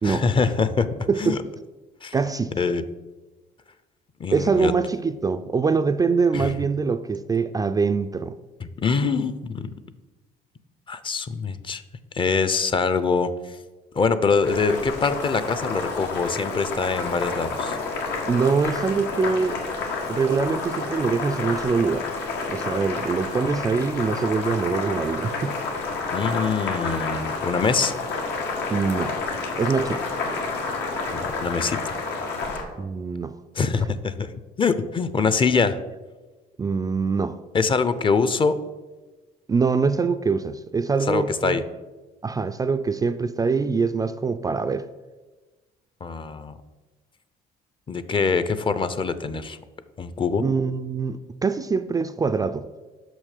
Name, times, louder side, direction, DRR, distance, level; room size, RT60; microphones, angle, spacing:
voice 1, 0.0-1.4 2.0-2.1 2.6-2.8 4.2-4.7 6.3-6.5 8.6-9.7 10.9-11.8 12.1-13.3 13.9-17.8 26.1-27.9 31.1-32.0 33.6-34.3 34.6-35.8 37.5-38.5 41.1-41.6 46.0-46.6 47.9-49.6 50.0-50.4, left 5 dB, 30° left, 0.6 m, -24 dB
voice 2, 1.1-1.4 2.1-2.5 4.3-8.4 18.3-19.6 20.1-22.1 22.5-25.6 28.7-29.1 29.6-30.1 32.8-33.4 36.6-37.4 39.5-41.6 42.2-44.9 50.4-52.7, right 5 dB, 20° right, 0.3 m, -24 dB
Boiling, 14.4-32.6, left 3 dB, 85° left, 1.9 m, -29 dB
6.2 x 6.1 x 6.6 m
cardioid pair, 110°, 17 cm